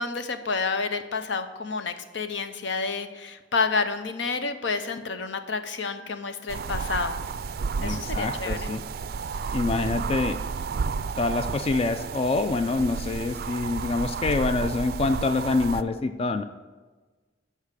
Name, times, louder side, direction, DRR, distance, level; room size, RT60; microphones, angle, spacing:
voice 1, 0.0-7.2 7.8-8.7, left 4 dB, 80° left, 9 dB, 0.7 m, -29 dB
sound 1, 6.5-15.8, right 5 dB, 55° right, 0.4 m, -32 dB
voice 2, 7.8-8.8 9.5-10.4 11.2-16.4, left 3 dB, 35° left, 9 dB, 0.4 m, -26 dB
8.2 x 5.6 x 6.7 m, 1.3 s
head